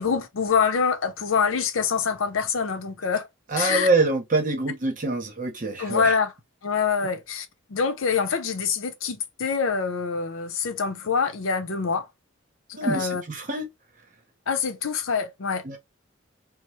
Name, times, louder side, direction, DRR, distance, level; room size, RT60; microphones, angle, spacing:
voice 1, 0.0-3.3 3.6-3.9 5.8-6.3 6.6-12.1 12.7-13.2 14.5-15.6, left 6 dB, 85° left, 0.6 m, -25 dB
voice 2, 3.5-6.1 12.7-13.7 15.6-15.8, right 2 dB, 40° right, 0.9 m, -25 dB
3.0 x 2.1 x 3.1 m
head